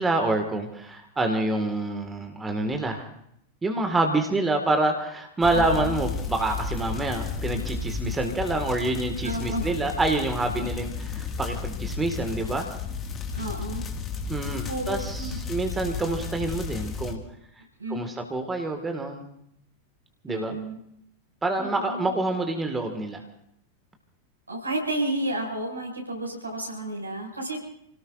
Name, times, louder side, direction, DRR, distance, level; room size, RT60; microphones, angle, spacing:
voice 1, 0.0-3.1 3.6-12.7 14.3-17.2 17.9-19.3 20.2-20.6 21.4-23.2, right 2 dB, 15° right, 4 dB, 2.0 m, -27 dB
sound 1, 5.4-17.1, left 5 dB, 25° left, 2.1 m, -33 dB
voice 2, 5.5-6.0 9.2-9.6 13.4-13.8 14.7-15.4 17.8-18.1 20.3-20.8 21.6-22.1 24.5-27.6, right 1 dB, 80° right, -2 dB, 6.5 m, -31 dB
29.5 x 18.0 x 2.6 m, 0.72 s
figure-of-eight pair, 90°, 0 cm